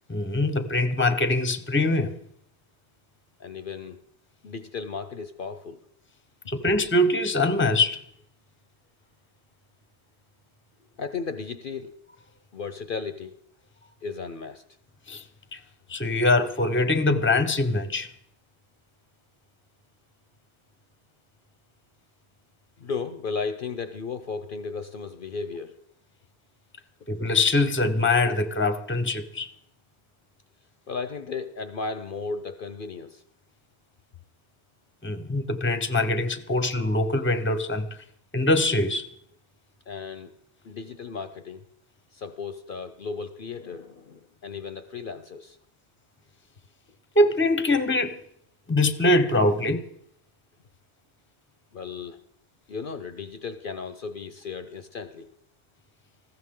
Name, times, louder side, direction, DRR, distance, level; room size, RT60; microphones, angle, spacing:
voice 1, 0.1-2.1 6.5-8.0 15.1-15.2 15.5-15.6 15.9-18.1 27.1-29.5 35.0-37.9 38.3-39.1 47.1-48.2 48.7-49.9, left 2 dB, 10° left, 0.8 m, -23 dB
voice 2, 3.4-4.0 4.4-5.8 11.0-11.9 12.5-13.4 14.0-14.6 22.8-25.8 30.9-33.2 39.9-40.3 40.6-41.7 42.1-45.6 51.7-52.2 52.7-55.3, left 5 dB, 55° left, 0.8 m, -35 dB
19.5 x 15.5 x 3.8 m
omnidirectional pair, 1.1 m